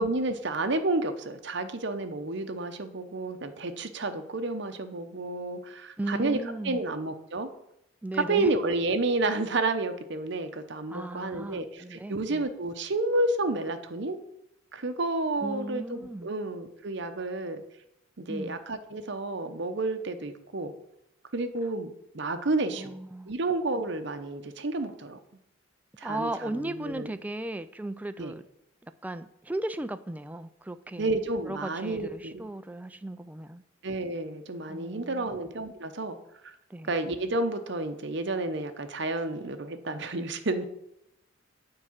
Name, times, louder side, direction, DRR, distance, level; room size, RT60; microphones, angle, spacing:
voice 1, 0.0-6.4 6.6-7.5 8.3-14.2 14.7-17.6 18.2-20.7 21.3-23.0 23.3-25.2 26.0-27.1 28.2-28.3 31.0-32.5 33.8-36.2 36.9-40.6, right 2 dB, 60° right, 8 dB, 0.8 m, -30 dB
voice 2, 6.0-6.8 8.0-8.5 10.9-12.5 15.4-16.3 18.3-18.6 22.8-23.4 26.0-28.4 28.8-33.6 34.7-35.4 36.7-36.9, right 1 dB, 10° right, 10 dB, 0.3 m, -36 dB
8.8 x 4.7 x 7.4 m, 0.82 s
head